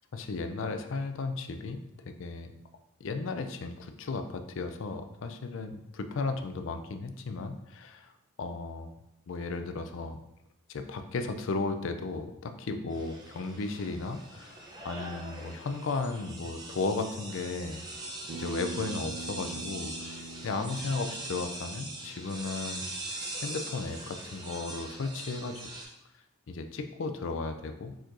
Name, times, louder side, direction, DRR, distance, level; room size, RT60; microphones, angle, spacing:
voice 1, 0.1-2.5 3.0-8.1 8.4-8.9 9.3-10.2 10.7-17.8 18.3-22.9 23.1-25.6 26.5-28.0, left 3 dB, 60° left, 8 dB, 0.4 m, -35 dB
sound 1, 12.9-25.8, right 2 dB, 20° right, 0.6 m, -42 dB
Bass guitar, 18.3-22.6, right 3 dB, 75° right, 0.5 m, -44 dB
4.4 x 4.4 x 2.6 m, 0.83 s
head